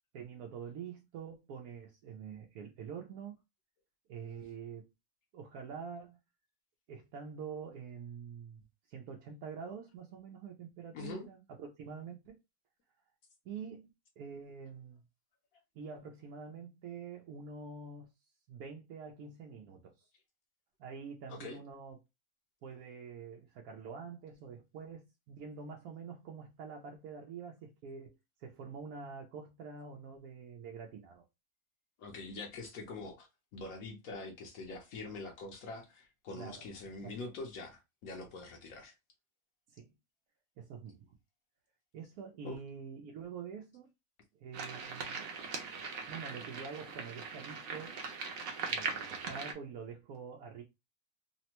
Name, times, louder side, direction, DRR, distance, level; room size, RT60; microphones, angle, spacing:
voice 1, 0.1-3.4 4.1-4.9 5.3-6.2 6.9-12.4 13.4-13.9 14.2-15.0 15.7-18.1 18.5-20.1 20.8-22.0 22.6-31.2 36.3-36.6 37.0-37.2 39.7-39.9 40.6-41.1 41.9-43.9 44.4-45.2 46.1-47.9 48.7-50.6, right 6 dB, 90° right, 1.1 m, -46 dB
voice 2, 10.9-11.3 21.3-21.6 32.0-38.9 42.4-42.6, left 3 dB, 75° left, 1.1 m, -44 dB
sound 1, 44.5-49.5, right 5 dB, 70° right, 1.1 m, -40 dB
3.3 x 2.1 x 2.8 m
omnidirectional pair, 1.5 m